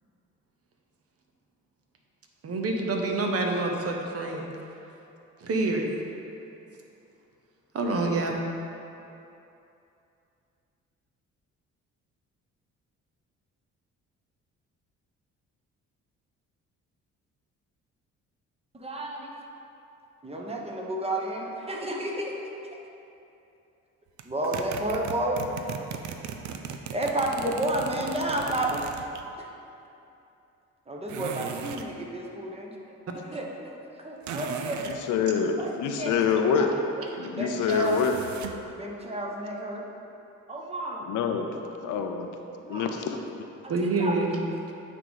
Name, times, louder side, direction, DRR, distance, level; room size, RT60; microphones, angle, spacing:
voice 1, 2.4-4.5 5.4-5.9 7.7-8.3 43.7-44.3, right 2 dB, 50° right, 2 dB, 0.9 m, -27 dB
voice 2, 18.7-19.3 20.2-22.3 24.2-25.7 26.9-28.8 29.4-29.5 30.9-32.7 33.3-33.7 34.0-35.0 35.6-35.7 36.0-36.8 37.4-38.0 38.8-39.8 40.5-41.1 42.6-43.0 43.6-43.7 44.0-44.4, right 1 dB, 20° right, -1 dB, 1.0 m, -31 dB
sound 1, 24.2-29.2 31.1-31.9 34.2-35.0 37.7-38.7, right 7 dB, 70° right, 0.5 m, -37 dB
voice 3, 34.9-36.7 37.2-38.1 41.1-41.5 41.8-42.3 42.7-43.3, left 6 dB, 80° left, 5 dB, 0.6 m, -26 dB
9.1 x 3.7 x 4.1 m, 2.8 s
cardioid pair, 90°, 30 cm